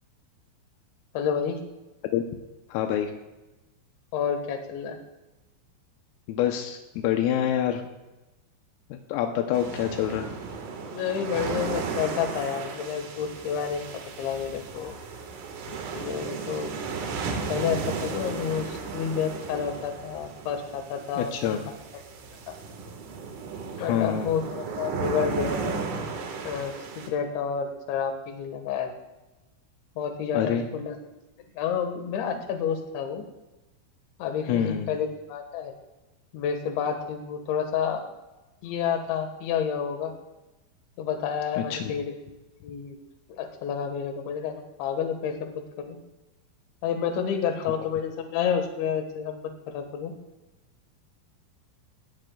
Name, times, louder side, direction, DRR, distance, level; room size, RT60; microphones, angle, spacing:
voice 1, 1.2-1.6 4.1-5.0 10.9-13.9 14.2-15.0 15.7-16.7 17.5-21.7 22.5-22.6 23.8-25.8 26.5-28.9 30.0-31.0 31.6-33.2 34.2-35.7 36.3-38.1 38.6-40.1 41.0-42.2 42.6-43.0 43.4-46.0 46.8-50.1, left 7 dB, 70° left, 5 dB, 3.7 m, -30 dB
voice 2, 2.7-3.1 6.3-7.8 9.1-10.3 21.2-21.6 23.8-24.3 30.4-30.7 34.5-34.9 41.6-41.9, left 10 dB, 85° left, 4 dB, 3.5 m, -26 dB
sound 1, 9.5-27.1, right 5 dB, 85° right, 4.4 m, -35 dB
18.5 x 16.5 x 2.3 m, 1.1 s
omnidirectional pair, 5.8 m